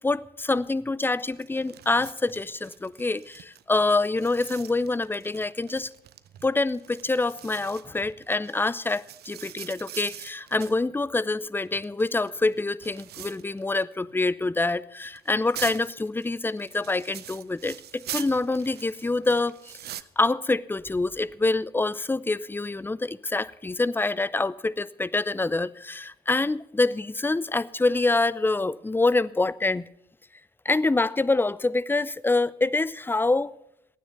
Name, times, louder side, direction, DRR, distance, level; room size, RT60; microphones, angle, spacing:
voice 1, 0.0-5.9 6.4-29.8 30.6-33.6, left 2 dB, 10° left, 0.5 m, -26 dB
sound 1, 1.3-10.8 11.6-13.8 14.1-14.2 15.1-20.0, right 12 dB, 50° right, 0.6 m, -43 dB
15.5 x 9.4 x 6.7 m
hypercardioid pair, 45°, 21 cm